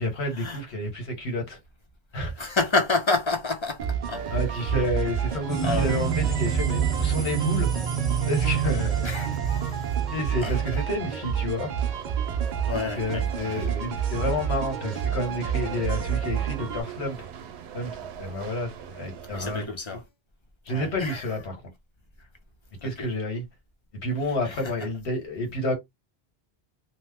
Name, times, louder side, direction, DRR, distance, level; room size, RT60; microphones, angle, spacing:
voice 1, 0.0-1.6 2.1-2.5 4.3-7.7 8.2-9.0 10.1-11.7 13.0-17.3 17.7-19.7 20.6-21.6 22.8-23.4 24.0-25.8, left 1 dB, 85° left, 1.4 m, -30 dB
voice 2, 2.4-4.2 5.6-6.0 9.0-10.0 10.4-10.8 12.7-13.7 19.3-20.0 20.7-21.3 22.8-23.1 24.4-24.7, left 3 dB, 30° left, 0.7 m, -29 dB
sound 1, 3.8-16.8, right 8 dB, 55° right, 0.6 m, -29 dB
sound 2, 4.2-19.7, right 8 dB, 85° right, 0.8 m, -43 dB
sound 3, 5.5-10.7, right 8 dB, ahead, 1.0 m, -28 dB
3.0 x 2.0 x 3.4 m
omnidirectional pair, 1.1 m